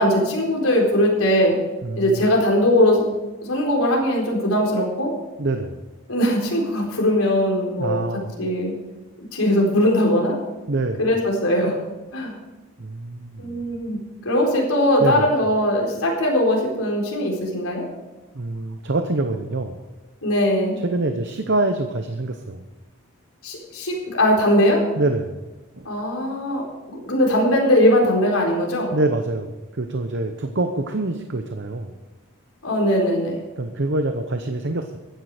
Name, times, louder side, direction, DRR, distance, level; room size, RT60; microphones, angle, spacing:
voice 1, 0.0-1.6 2.0-3.0 3.4-5.1 6.1-8.1 8.4-8.7 9.3-10.4 11.0-11.8 12.1-12.3 13.4-14.0 14.2-17.8 20.2-20.8 23.4-24.8 25.8-26.6 26.9-28.9 32.6-33.4, left 1 dB, 75° left, -1 dB, 4.2 m, -20 dB
voice 2, 1.8-2.2 5.4-5.8 7.8-8.3 10.7-11.0 12.8-13.6 15.0-15.3 18.3-19.8 20.8-22.6 25.0-25.4 25.8-25.9 28.9-31.9 33.6-35.0, right 2 dB, 50° right, 6 dB, 0.8 m, -25 dB
15.0 x 10.5 x 5.0 m, 1.2 s
head